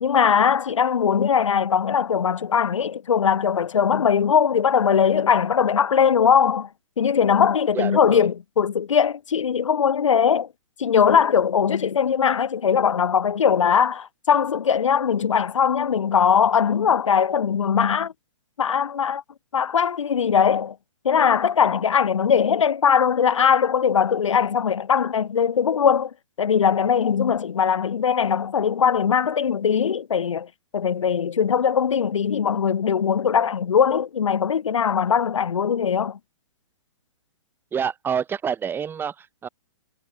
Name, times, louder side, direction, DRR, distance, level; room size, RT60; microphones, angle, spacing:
voice 1, 0.0-6.7 7.0-10.5 10.8-18.1 18.6-19.2 19.5-20.8 21.0-26.1 26.4-36.2, left 7 dB, 85° left, 0.8 m, -20 dB
voice 2, 7.7-8.3 37.7-39.5, right 7 dB, 15° right, 2.1 m, -28 dB
hypercardioid pair, 140°, 16 cm